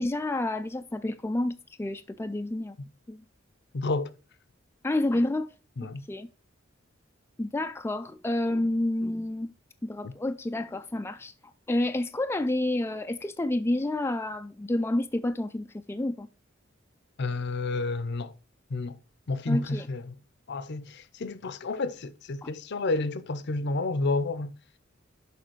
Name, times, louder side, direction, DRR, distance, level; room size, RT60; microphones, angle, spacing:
voice 1, 0.0-2.8 3.1-3.2 4.8-5.5 5.8-6.3 7.4-9.5 9.8-11.3 11.7-16.3 19.5-19.9 22.4-22.5, left 1 dB, 10° left, 0.3 m, -29 dB
voice 2, 3.7-4.1 5.8-6.0 10.0-10.1 17.2-18.3 18.7-19.0 19.3-20.1 20.5-24.5, left 3 dB, 60° left, 0.6 m, -30 dB
6.6 x 5.1 x 4.6 m
head